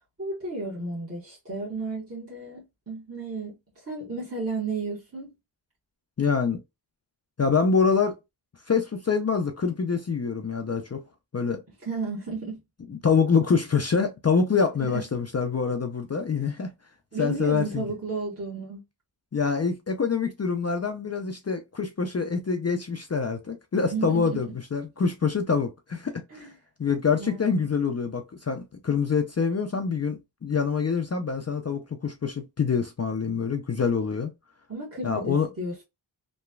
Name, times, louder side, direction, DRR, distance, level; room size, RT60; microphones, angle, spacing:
voice 1, 0.2-5.3 11.8-12.6 14.8-15.0 17.1-18.8 23.9-24.4 26.3-26.5 27.2-27.7 34.7-35.8, right 3 dB, 30° right, 1.2 m, -33 dB
voice 2, 6.2-6.6 7.4-8.2 8.7-11.0 11.3-11.6 13.0-16.7 17.2-17.8 19.3-26.5 26.8-34.3 35.0-35.5, left 5 dB, 35° left, 0.5 m, -25 dB
3.1 x 2.2 x 2.3 m
cardioid pair, 40°, 45 cm